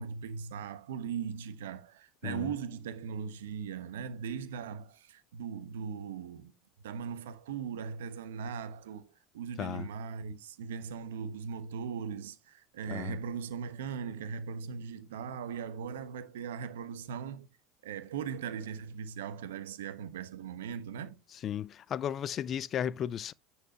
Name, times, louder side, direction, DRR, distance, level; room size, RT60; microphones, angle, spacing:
voice 1, 0.0-6.5 6.8-17.5 17.8-21.2, right 7 dB, 80° right, 1.1 m, -39 dB
voice 2, 21.4-23.3, left 9 dB, 40° left, 0.4 m, -35 dB
10.0 x 4.6 x 2.9 m
hypercardioid pair, 85°, 0 cm